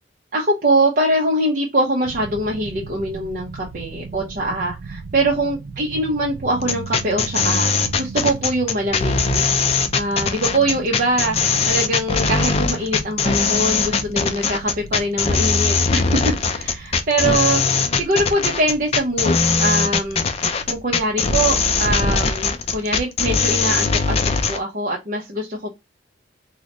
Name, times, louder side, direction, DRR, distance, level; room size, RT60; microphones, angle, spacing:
voice 1, 0.3-7.7 8.0-9.4 9.9-20.2 20.7-24.2 24.5-25.7, right 1 dB, 50° right, -2 dB, 0.7 m, -23 dB
sound 1, 2.0-21.2, right 4 dB, 80° right, 0.4 m, -37 dB
sound 2, 6.6-24.6, left 4 dB, 35° left, 0.4 m, -20 dB
3.8 x 2.1 x 2.9 m, 0.21 s
head